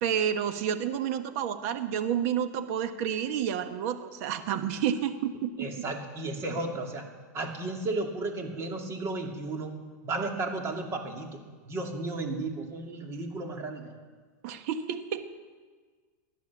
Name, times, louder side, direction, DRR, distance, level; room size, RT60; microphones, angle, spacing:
voice 1, 0.0-5.7 14.4-15.3, right 9 dB, 55° right, 9 dB, 1.3 m, -30 dB
voice 2, 5.6-7.0 7.3-9.7 10.0-13.9, right 2 dB, 30° right, 2 dB, 2.5 m, -34 dB
16.0 x 11.0 x 7.3 m, 1.5 s
supercardioid pair, 140°, 10 cm